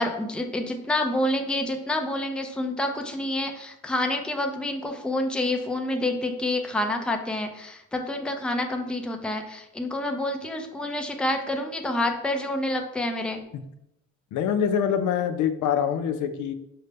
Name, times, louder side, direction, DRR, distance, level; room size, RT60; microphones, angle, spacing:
voice 1, 0.0-13.4, left 1 dB, 5° left, 4 dB, 0.4 m, -28 dB
voice 2, 14.3-16.5, left 8 dB, 75° left, 9 dB, 0.5 m, -25 dB
5.3 x 2.1 x 3.3 m, 0.81 s
cardioid pair, 90°, 30 cm